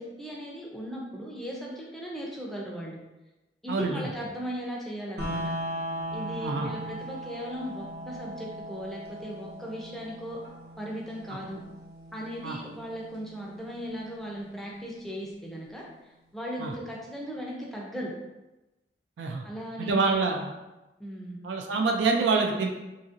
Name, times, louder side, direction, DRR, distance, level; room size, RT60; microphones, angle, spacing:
voice 1, 0.0-3.0 3.6-5.4 6.1-10.4 10.8-11.6 12.1-18.1 19.4-20.1 21.0-21.4, equal, ahead, -4 dB, 0.4 m, -37 dB
voice 2, 3.7-4.1 6.4-6.7 12.4-12.6 16.6-16.7 19.2-19.5 19.8-20.5 21.4-22.7, right 4 dB, 85° right, 2 dB, 0.3 m, -26 dB
sound 1, 5.2-15.2, equal, 60° right, 0.7 m, -39 dB
2.8 x 2.6 x 2.4 m, 1.0 s
head